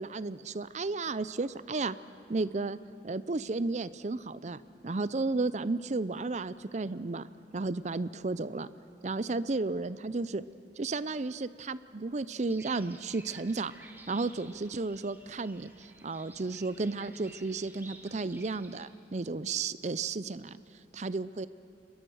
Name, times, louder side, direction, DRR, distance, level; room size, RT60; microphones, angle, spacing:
voice 1, 0.0-2.0 2.3-2.8 3.0-7.3 7.5-8.7 9.0-10.4 10.8-13.7 14.1-20.6 21.0-21.5, right 3 dB, 40° right, 16 dB, 0.5 m, -33 dB
sound 1, 12.5-18.8, right 2 dB, 10° right, 1.5 m, -53 dB
30.0 x 21.5 x 6.4 m, 2.7 s
head